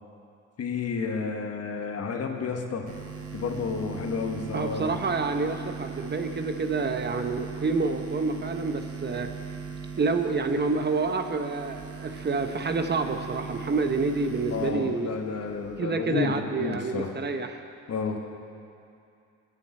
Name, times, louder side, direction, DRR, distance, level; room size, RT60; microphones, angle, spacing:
voice 1, 0.6-2.9 3.3-5.0 14.5-17.1 17.9-18.2, left 5 dB, 55° left, 3 dB, 1.4 m, -31 dB
sound 1, 2.9-15.8, right 5 dB, 50° right, 1.7 m, -39 dB
voice 2, 4.5-9.3 10.0-15.1 15.8-17.6, right 4 dB, 35° right, 6 dB, 0.9 m, -28 dB
21.0 x 7.8 x 4.3 m, 2.6 s
cardioid pair, 90°, 30 cm